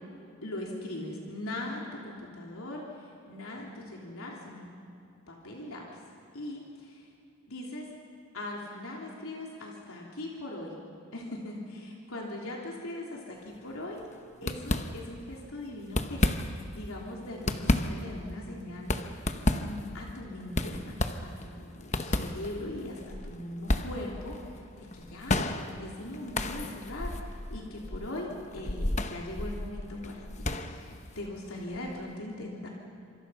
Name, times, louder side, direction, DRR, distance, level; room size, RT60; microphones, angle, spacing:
voice 1, 0.4-4.7 5.3-5.8 6.3-7.1 7.5-7.9 8.3-10.7 11.1-14.0 14.4-18.9 19.6-24.6 24.9-25.4 25.8-32.7, left 1 dB, 70° left, -2 dB, 3.5 m, -40 dB
sound 1, 13.5-13.7 14.0-14.1 14.4-15.3 15.8-16.8 17.2-32.1, left 1 dB, 30° left, 1.0 m, -32 dB
26.5 x 26.0 x 5.8 m, 2.6 s
head